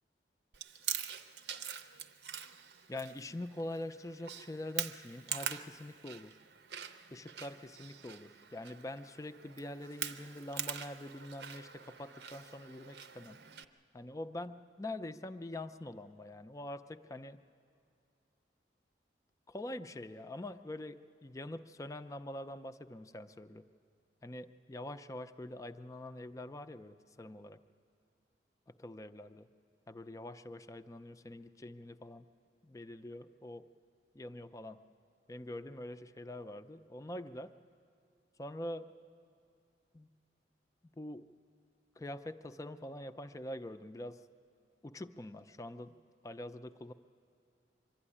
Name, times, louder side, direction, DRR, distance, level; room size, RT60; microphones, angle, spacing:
Chewing mastication, 0.5-13.6, right 8 dB, 70° right, 0.7 m, -44 dB
voice 1, 2.9-6.4 7.1-13.4 13.9-17.4 19.5-23.6 24.2-27.6 28.8-29.5 29.9-32.3 32.6-33.7 34.1-34.8 35.3-37.5 38.4-38.9 39.9-40.1 41.0-41.3 42.0-44.2 44.8-46.0 46.2-46.9, left 1 dB, 20° left, 10 dB, 0.4 m, -44 dB
24.0 x 12.0 x 9.9 m, 2.4 s
head